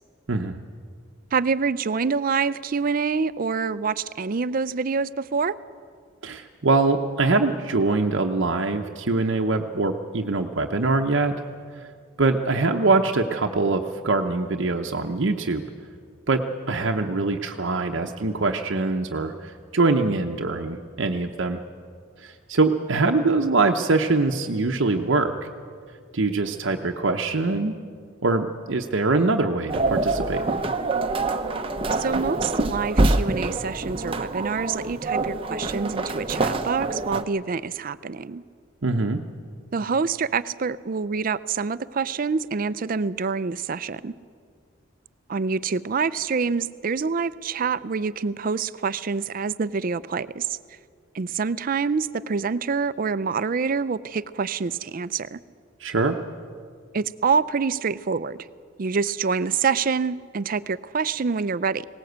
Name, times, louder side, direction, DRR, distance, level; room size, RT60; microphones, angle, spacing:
voice 1, 0.3-0.6 6.2-11.3 12.2-15.6 16.3-21.6 22.2-25.4 26.1-27.7 28.2-30.4 38.8-39.2 55.8-56.2, right 3 dB, 65° right, 3 dB, 0.8 m, -23 dB
voice 2, 1.3-5.6 31.9-38.4 39.7-44.1 45.3-50.6 51.1-55.4 56.9-58.4 58.8-61.9, right 5 dB, 45° right, 16 dB, 0.5 m, -26 dB
sound 1, 29.7-37.2, right 2 dB, 25° right, 0.8 m, -25 dB
20.0 x 18.0 x 8.0 m, 2.1 s
head